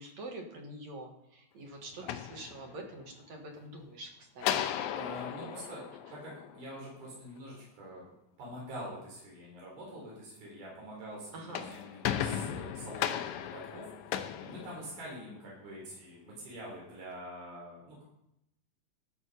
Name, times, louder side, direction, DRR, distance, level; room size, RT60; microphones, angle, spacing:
voice 1, 0.0-4.6 5.0-5.8 11.3-11.7, right 1 dB, 60° right, 2 dB, 2.3 m, -46 dB
sound 1, 1.9-3.1 4.4-6.9 11.3-15.4, left 10 dB, 85° left, 1.6 m, -36 dB
voice 2, 4.9-5.8 6.1-8.1 8.4-18.0, equal, 90° right, -5 dB, 5.8 m, -45 dB
14.0 x 6.7 x 5.3 m, 0.82 s
omnidirectional pair, 4.2 m